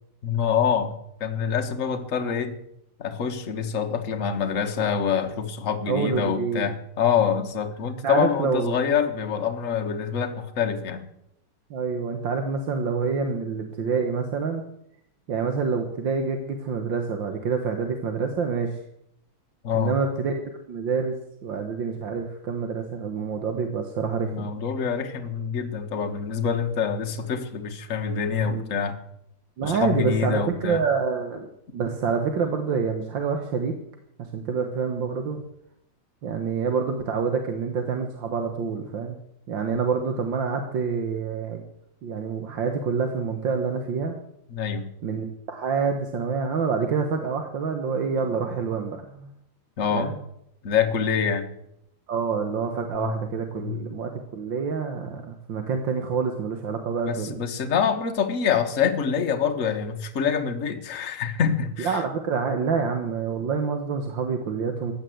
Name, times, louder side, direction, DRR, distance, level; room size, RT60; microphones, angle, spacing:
voice 1, 0.2-2.6 3.0-11.0 19.6-19.9 24.1-28.9 29.6-30.8 39.7-39.8 44.5-44.9 49.8-50.1 50.6-51.5 53.0-53.1 53.6-53.8 57.0-62.0, left 7 dB, 40° left, 1.5 m, -26 dB
voice 2, 5.8-6.7 7.1-7.2 8.0-8.8 11.7-14.6 15.3-18.8 19.7-20.4 20.7-21.2 21.4-24.5 28.5-28.6 29.6-31.5 31.7-33.8 34.2-35.4 36.2-39.2 39.5-41.6 42.0-44.2 45.0-49.3 49.9-50.2 52.1-57.4 61.8-64.9, right 5 dB, 65° right, 1.9 m, -27 dB
15.5 x 10.0 x 7.8 m
omnidirectional pair, 2.4 m